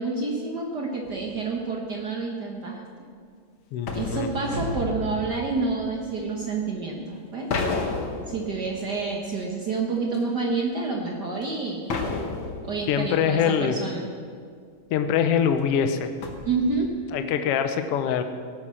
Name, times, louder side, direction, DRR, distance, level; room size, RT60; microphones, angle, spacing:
voice 1, 0.0-2.8 3.9-7.5 8.3-11.9 12.6-14.1 16.5-16.9, right 4 dB, 55° right, 0 dB, 1.1 m, -28 dB
sound 1, 1.0-1.6 3.9-5.6 7.5-9.5 10.1-10.2 11.4-11.5 11.9-13.4 15.6-15.7 16.2-17.3, left 4 dB, 55° left, 1.5 m, -32 dB
voice 2, 3.7-4.3 12.9-13.7 14.9-16.1 17.1-18.2, left 8 dB, 70° left, 8 dB, 1.5 m, -23 dB
sound 2, 4.4-6.5, equal, 30° right, 3.1 m, -35 dB
17.0 x 8.9 x 6.3 m, 2.1 s
omnidirectional pair, 3.4 m